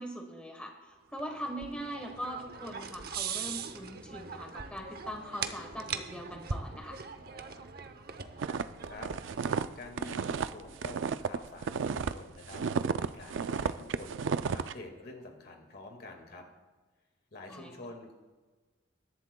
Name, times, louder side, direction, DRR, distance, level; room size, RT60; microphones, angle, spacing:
voice 1, 0.0-7.0 17.5-17.7, equal, 5° left, 2 dB, 1.2 m, -41 dB
sound 1, 1.1-9.7, right 6 dB, 55° right, 0.8 m, -41 dB
sound 2, 8.4-12.1 12.4-14.7, right 6 dB, 90° right, 0.4 m, -32 dB
voice 2, 8.8-9.5 9.8-12.6 13.0-14.2 14.5-16.5 17.3-18.1, left 2 dB, 55° left, 3 dB, 1.9 m, -47 dB
21.0 x 11.0 x 2.3 m, 1.3 s
head